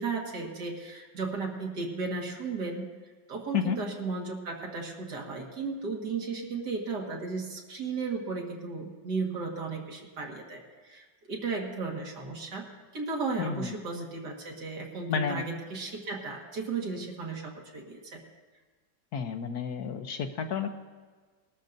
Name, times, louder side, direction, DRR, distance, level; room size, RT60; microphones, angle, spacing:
voice 1, 0.0-2.9 3.3-12.7 12.9-18.2, right 4 dB, 70° right, 0 dB, 2.3 m, -35 dB
voice 2, 13.4-13.7 15.1-15.4 19.1-20.7, left 6 dB, 65° left, 7 dB, 1.2 m, -31 dB
20.5 x 13.0 x 2.6 m, 1.5 s
omnidirectional pair, 1.9 m